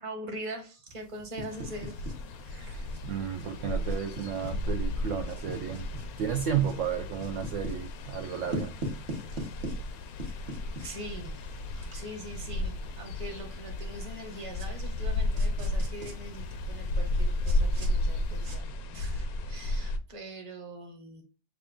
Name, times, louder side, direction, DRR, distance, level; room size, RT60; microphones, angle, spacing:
voice 1, 0.0-2.9 9.3-9.5 10.8-21.2, right 1 dB, 25° right, 0.9 m, -43 dB
sound 1, 0.9-18.6, equal, 50° right, 1.3 m, -44 dB
sound 2, 1.5-20.0, left 1 dB, 75° left, 1.0 m, -33 dB
voice 2, 3.0-5.9 6.2-8.7, right 8 dB, 65° right, 0.8 m, -32 dB
6.0 x 2.3 x 3.6 m
omnidirectional pair, 1.6 m